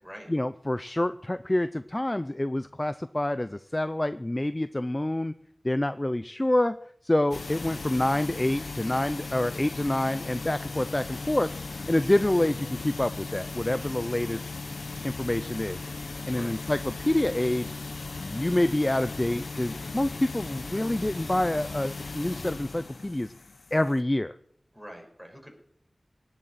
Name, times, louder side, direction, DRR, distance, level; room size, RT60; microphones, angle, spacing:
voice 1, 0.3-5.3 5.6-6.8 7.0-11.5 11.9-14.5 15.0-15.8 16.3-17.7 18.2-23.3 23.7-24.3, left 1 dB, 25° left, 13 dB, 0.5 m, -27 dB
sound 1, 7.3-24.0, left 3 dB, 80° left, 1.0 m, -37 dB
voice 2, 16.2-16.6 24.7-25.5, equal, ahead, 2 dB, 5.2 m, -45 dB
18.0 x 7.4 x 9.8 m, 0.66 s
wide cardioid pair, 70°, 0 cm